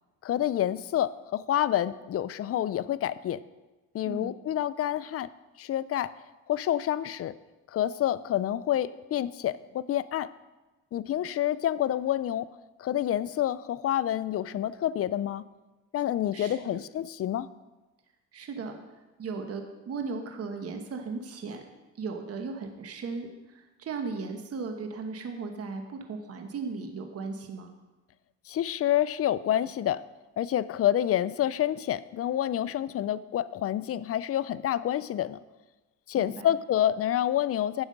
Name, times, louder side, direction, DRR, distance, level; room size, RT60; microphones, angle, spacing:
voice 1, 0.2-3.4 3.9-5.3 5.6-6.1 6.5-7.3 7.7-10.3 10.9-12.5 12.8-15.4 15.9-17.5 28.5-30.0 30.4-35.4 36.1-37.8, left 11 dB, 50° left, 16 dB, 0.5 m, -28 dB
voice 2, 16.3-16.8 18.3-18.8 19.2-21.7 22.0-27.7 36.1-36.5, right 4 dB, 50° right, 5 dB, 1.2 m, -37 dB
9.7 x 7.2 x 5.2 m, 1.1 s
cardioid pair, 90°, 30 cm